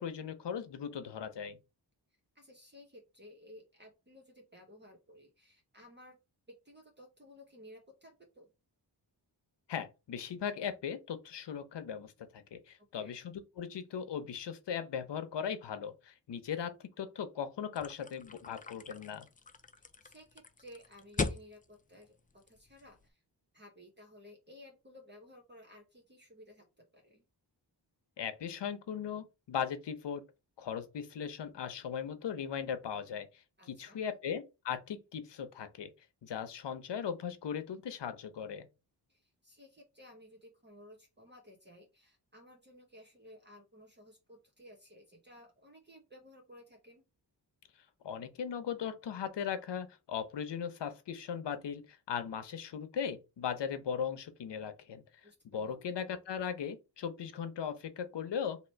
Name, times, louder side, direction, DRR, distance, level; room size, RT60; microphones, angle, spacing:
voice 1, 0.0-1.6 9.7-19.3 28.2-30.2 30.6-35.9 36.2-38.7 48.0-55.0 55.5-58.6, left 7 dB, 75° left, 0.8 m, -38 dB
voice 2, 2.3-6.2 6.5-8.5 12.8-13.1 20.0-22.2 22.5-23.2 23.5-27.2 33.6-34.0 39.1-47.0 55.2-55.8, left 1 dB, 25° right, 0.9 m, -56 dB
sound 1, 17.7-23.1, left 4 dB, 20° left, 0.4 m, -41 dB
2.9 x 2.9 x 4.4 m
wide cardioid pair, 90°, 42 cm